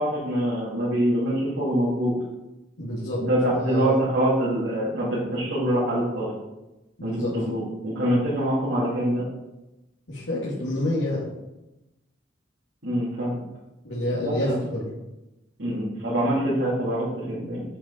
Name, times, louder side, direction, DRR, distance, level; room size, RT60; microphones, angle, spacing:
voice 1, 0.0-2.2 3.2-6.3 7.0-9.2 12.8-13.4 14.2-14.5 15.6-17.6, right 1 dB, 80° right, -10 dB, 3.2 m, -25 dB
voice 2, 2.8-3.2 3.5-4.0 7.0-7.3 10.1-11.2 13.8-14.9, left 1 dB, 85° left, -9 dB, 2.3 m, -28 dB
8.4 x 5.8 x 4.2 m, 0.97 s
head